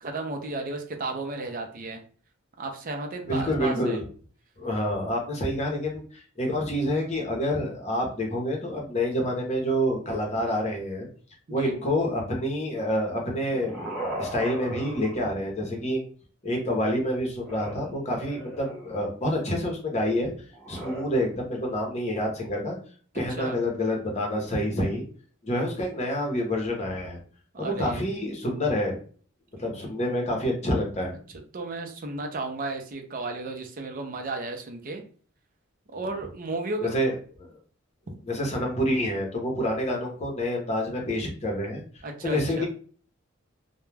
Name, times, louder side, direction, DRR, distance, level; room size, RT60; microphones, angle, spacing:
voice 1, 0.0-2.0 2.6-4.0 11.5-11.7 23.4-23.6 27.5-28.0 31.5-35.0 35.9-36.9 42.0-42.6, right 3 dB, 45° right, 4 dB, 0.5 m, -33 dB
voice 2, 3.3-4.0 4.6-11.1 11.5-16.0 16.4-20.3 20.7-22.8 23.1-25.0 25.4-27.2 27.6-29.0 29.6-31.1 36.8-37.5 38.3-41.8 42.2-42.7, equal, 35° left, 0 dB, 0.8 m, -28 dB
sound 1, 13.2-15.9 17.4-19.1 20.5-21.0, right 1 dB, 5° right, 0.9 m, -38 dB
2.3 x 2.1 x 3.2 m, 0.43 s
head